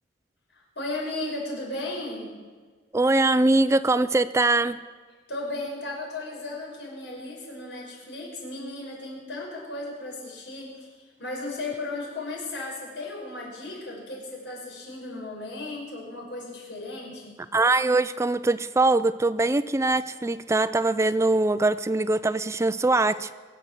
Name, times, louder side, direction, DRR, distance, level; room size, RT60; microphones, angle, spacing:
voice 1, 0.5-2.3 5.3-10.9 11.2-17.4, left 2 dB, 85° left, -2 dB, 5.7 m, -35 dB
voice 2, 2.9-4.8 17.5-23.3, right 2 dB, 15° right, 14 dB, 0.4 m, -22 dB
23.0 x 7.9 x 7.4 m, 1.5 s
head